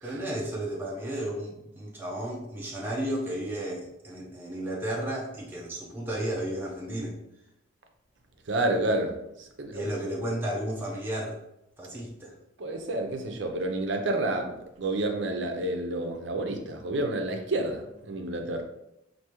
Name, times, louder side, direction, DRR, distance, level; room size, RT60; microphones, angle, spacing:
voice 1, 0.0-7.2 9.7-11.4 11.8-12.3, right 1 dB, 10° right, -4 dB, 0.6 m, -33 dB
voice 2, 8.5-9.8 12.6-18.6, right 2 dB, 65° right, 4 dB, 0.6 m, -29 dB
4.7 x 2.6 x 3.0 m, 0.84 s
head